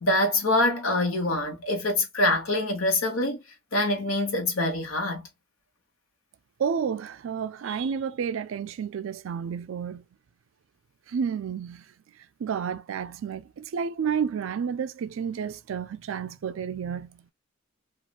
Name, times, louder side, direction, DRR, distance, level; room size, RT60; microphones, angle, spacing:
voice 1, 0.0-3.4 3.7-5.3, left 1 dB, 90° left, 1.1 m, -25 dB
voice 2, 6.6-10.0 11.1-11.8 12.4-17.3, right 7 dB, 75° right, 0.3 m, -31 dB
3.1 x 2.4 x 2.3 m
head